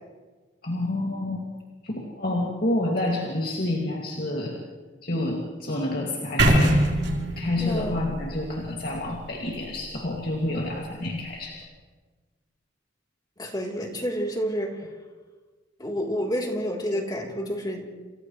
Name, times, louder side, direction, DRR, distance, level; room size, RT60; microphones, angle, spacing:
voice 1, 0.6-1.5 1.8-4.5 5.0-6.9 7.4-11.6, left 1 dB, 50° left, -2 dB, 2.4 m, -28 dB
sound 1, 6.4-10.4, right 1 dB, 60° right, 4.2 m, -24 dB
voice 2, 7.6-8.0 13.4-14.9 15.8-17.9, equal, 20° left, -1 dB, 3.4 m, -29 dB
29.0 x 28.0 x 3.2 m, 1.4 s
head